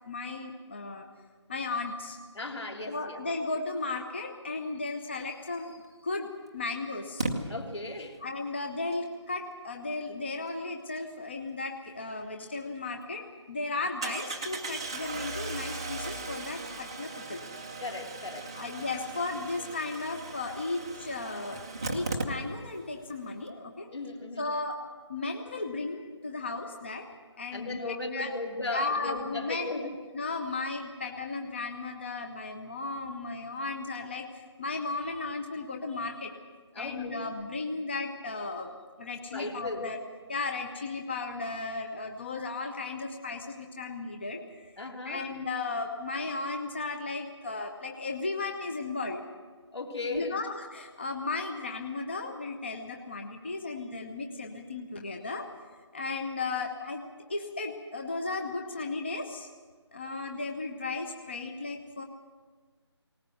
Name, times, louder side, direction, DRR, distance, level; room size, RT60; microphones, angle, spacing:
voice 1, 0.1-1.1 1.5-2.2 2.9-7.3 8.2-17.4 18.5-23.9 24.4-24.8 25.1-27.1 27.4-28.3 28.7-29.9 30.1-36.3 36.8-38.7 39.0-40.0 40.3-44.7 45.0-49.2 50.1-55.5 55.9-57.0 57.3-59.5 59.9-62.0, left 3 dB, 25° left, 4 dB, 0.8 m, -35 dB
voice 2, 2.3-3.2 7.5-8.2 17.8-18.5 23.9-24.5 27.5-29.9 36.7-37.2 39.3-39.9 44.8-45.3 49.7-50.4, left 2 dB, 70° left, 2 dB, 3.1 m, -36 dB
Engine starting, 5.7-5.8 7.2-7.3 12.4-12.5 12.9-13.0 14.0-22.8 23.1-23.2 23.4-23.5, right 3 dB, 10° right, 0.6 m, -37 dB
19.0 x 18.5 x 7.8 m, 1.5 s
figure-of-eight pair, 175°, 15 cm